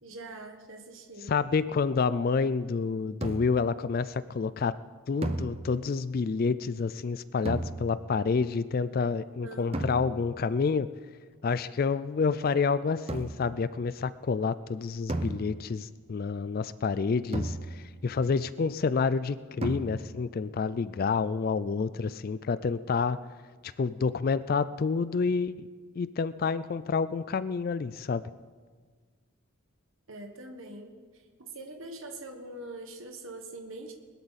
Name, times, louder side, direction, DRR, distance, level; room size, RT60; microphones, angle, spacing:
voice 1, 0.0-1.3 9.4-9.9 30.1-33.9, right 2 dB, 65° right, 4 dB, 1.4 m, -43 dB
voice 2, 1.3-4.7 5.1-10.9 11.4-23.2 23.6-25.7 26.0-28.2, left 5 dB, 45° left, 16 dB, 0.3 m, -28 dB
sound 1, 3.2-3.8 5.2-6.1 7.4-8.2 9.7-10.4 13.1-13.6 15.1-16.0 17.3-18.1 19.6-20.3, right 1 dB, 25° right, 0.6 m, -35 dB
20.5 x 12.5 x 4.2 m, 1.5 s
head